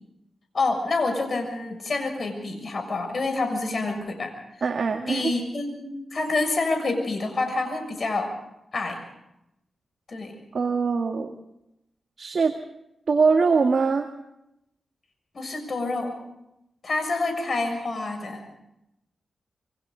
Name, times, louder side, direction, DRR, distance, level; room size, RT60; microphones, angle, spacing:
voice 1, 0.5-4.3 5.1-8.3 8.7-9.0 10.1-10.3 15.3-16.1 16.8-18.4, left 3 dB, 55° left, 5 dB, 6.8 m, -27 dB
voice 2, 4.6-5.3 10.5-11.4 12.2-12.5 13.1-14.1, right 4 dB, 60° right, 4 dB, 1.8 m, -22 dB
27.5 x 24.0 x 4.0 m, 0.83 s
cardioid pair, 70°, 0 cm